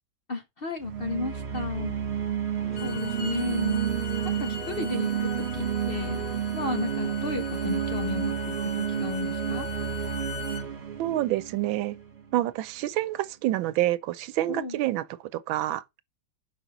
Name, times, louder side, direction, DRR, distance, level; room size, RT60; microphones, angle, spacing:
voice 1, 0.3-1.9 2.8-3.8 4.4-6.2 6.5-9.7 14.5-14.8, left 3 dB, 75° left, 0.5 m, -33 dB
sound 1, 0.8-12.3, right 9 dB, 35° right, 1.6 m, -30 dB
Bowed string instrument, 2.6-10.6, left 8 dB, 50° left, 1.9 m, -41 dB
voice 2, 11.0-12.0 12.3-15.8, right 14 dB, 85° right, 1.4 m, -27 dB
5.4 x 5.2 x 5.9 m
omnidirectional pair, 2.1 m